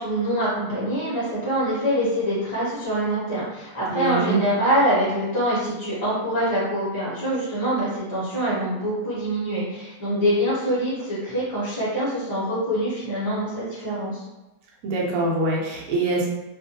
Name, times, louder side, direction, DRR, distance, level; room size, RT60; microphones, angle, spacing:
voice 1, 0.0-14.2, equal, 30° left, -9 dB, 0.5 m, -24 dB
voice 2, 3.9-4.4 14.8-16.3, right 2 dB, 80° right, -3 dB, 1.2 m, -24 dB
2.4 x 2.4 x 2.7 m, 1.0 s
omnidirectional pair, 1.6 m